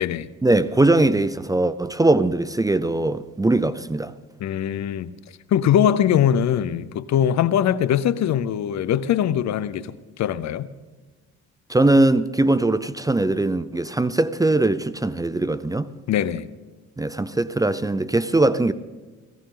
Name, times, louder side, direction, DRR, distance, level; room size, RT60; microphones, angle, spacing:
voice 1, 0.4-4.1 11.7-15.9 17.0-18.7, right 2 dB, 10° right, 0.5 m, -20 dB
voice 2, 4.4-5.1 5.5-10.7 16.1-16.5, left 9 dB, 65° left, 0.7 m, -21 dB
18.0 x 15.5 x 3.8 m
cardioid pair, 90°, 30 cm